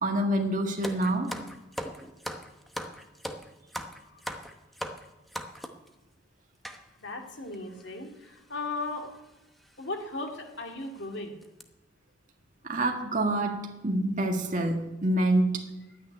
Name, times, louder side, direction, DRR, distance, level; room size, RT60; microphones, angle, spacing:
voice 1, 0.0-1.3 12.6-13.6 13.8-15.7, right 1 dB, 40° right, 2 dB, 1.8 m, -26 dB
sound 1, 0.8-5.9 6.6-6.8 7.5-7.6 7.8-8.0 9.0-9.2 9.6-9.7 10.3-10.4 10.8-11.0 11.4-11.6, equal, ahead, 0.9 m, -39 dB
voice 2, 7.0-9.2 9.8-11.4, left 2 dB, 65° left, 3 dB, 2.2 m, -36 dB
11.5 x 9.5 x 9.6 m, 1.0 s
head